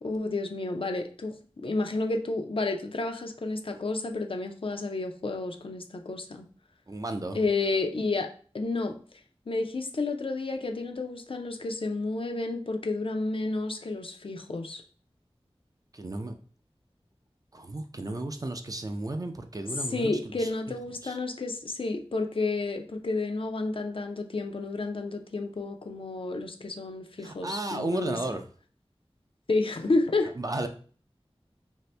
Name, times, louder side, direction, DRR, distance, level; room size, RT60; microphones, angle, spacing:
voice 1, 0.0-6.5 7.3-8.3 8.5-9.0 9.5-14.8 19.9-28.2 29.5-30.3, left 3 dB, 60° left, 4 dB, 0.4 m, -31 dB
voice 2, 6.9-7.4 15.9-16.3 17.5-20.5 21.0-21.2 27.2-28.4 30.4-30.7, right 2 dB, 35° right, 6 dB, 0.4 m, -33 dB
2.7 x 2.5 x 3.2 m, 0.42 s
wide cardioid pair, 50°, 10 cm